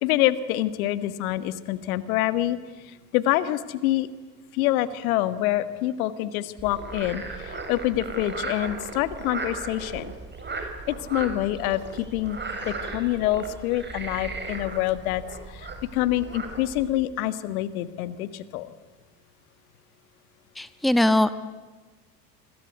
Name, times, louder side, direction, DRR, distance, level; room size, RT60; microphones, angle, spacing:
voice 1, 0.0-2.6 2.8-4.1 4.5-10.1 10.9-12.4 12.6-18.7, left 14 dB, 65° left, 13 dB, 1.7 m, -26 dB
Frog, 6.6-16.9, right 3 dB, 25° right, 6.4 m, -36 dB
voice 2, 20.6-21.3, left 1 dB, ahead, 12 dB, 1.2 m, -21 dB
27.0 x 25.5 x 8.2 m, 1.3 s
figure-of-eight pair, 65°, 46 cm